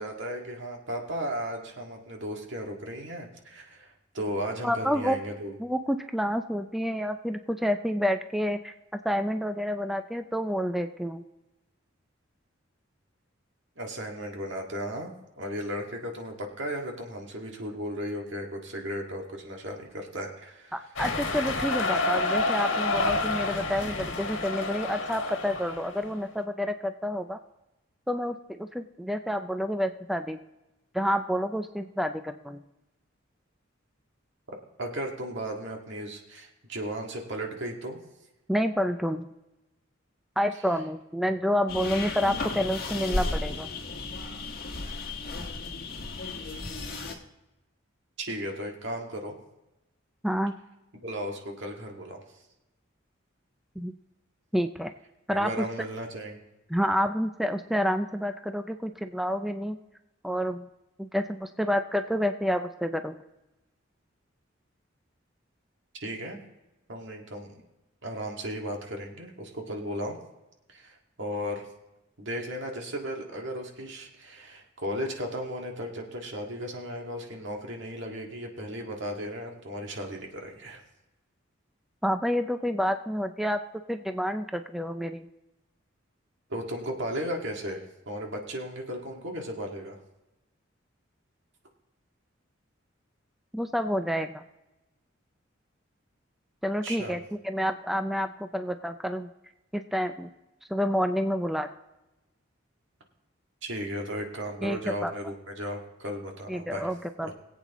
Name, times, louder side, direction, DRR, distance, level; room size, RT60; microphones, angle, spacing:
voice 1, 0.0-5.6 13.8-20.7 34.8-38.0 48.2-49.4 51.0-52.2 55.3-56.4 65.9-66.4 66.9-67.6 68.0-70.2 70.7-71.7 72.2-80.8 86.5-90.0 96.8-97.2 103.6-106.9 107.2-107.3, equal, 65° right, 1 dB, 2.0 m, -35 dB
voice 2, 4.6-5.2 5.6-8.7 9.0-11.2 20.7-27.4 28.1-30.4 30.9-32.6 38.5-39.3 40.4-43.7 50.2-50.5 53.8-53.9 54.5-54.9 55.3-55.6 56.7-59.8 60.2-60.7 61.0-63.2 82.0-83.6 83.9-85.3 93.5-94.4 96.6-99.3 99.7-100.3 100.7-101.7 104.6-105.1 106.5-107.3, equal, ahead, 7 dB, 0.4 m, -29 dB
sound 1, 21.0-26.1, left 2 dB, 75° left, 1.7 m, -29 dB
sound 2, 41.7-47.2, left 3 dB, 50° left, 1.7 m, -34 dB
22.0 x 8.3 x 3.0 m, 0.99 s
head